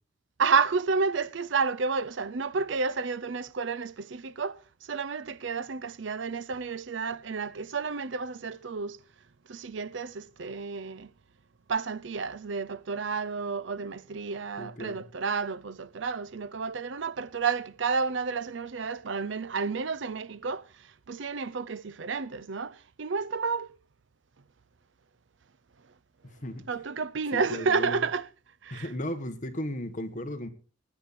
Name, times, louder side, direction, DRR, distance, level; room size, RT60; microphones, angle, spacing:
voice 1, 0.4-9.0 9.5-11.1 11.7-23.7 26.7-28.3 28.6-28.9, right 5 dB, 70° right, 0.6 m, -31 dB
voice 2, 14.6-15.0 26.2-26.6 27.3-28.0 28.7-30.5, left 1 dB, 40° left, 1.5 m, -35 dB
19.5 x 8.4 x 4.3 m
head